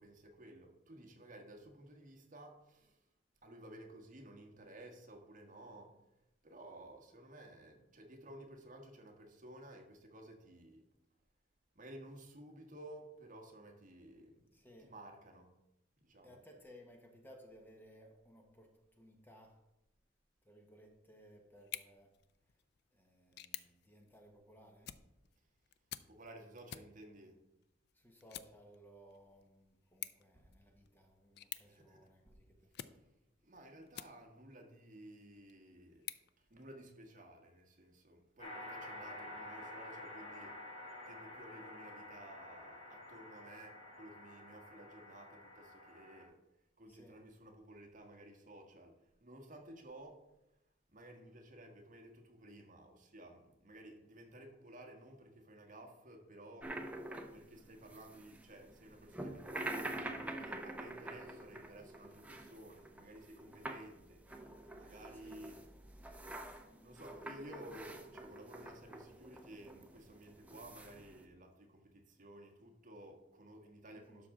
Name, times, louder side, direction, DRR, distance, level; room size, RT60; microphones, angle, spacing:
voice 1, 0.0-3.0 3.4-6.0 6.4-10.8 11.7-14.4 14.8-15.5 16.0-16.4 26.1-27.4 31.6-32.1 32.8-33.0 33.4-36.1 36.4-40.6 41.1-46.3 46.8-48.9 49.2-50.2 50.9-56.7 57.3-64.2 64.6-65.6 66.8-74.3, right 1 dB, 45° right, 1.4 m, -55 dB
voice 2, 14.5-14.9 16.2-19.6 20.4-22.1 22.9-25.0 27.9-32.6 46.9-47.2 65.2-65.4 73.9-74.2, equal, 10° left, 1.2 m, -60 dB
sound 1, 21.6-34.6 35.1-37.1, left 12 dB, 60° left, 0.4 m, -53 dB
sound 2, 38.4-46.2, left 1 dB, 35° left, 2.3 m, -50 dB
sound 3, 56.6-71.2, right 1 dB, 10° right, 0.8 m, -47 dB
12.0 x 6.0 x 3.7 m
head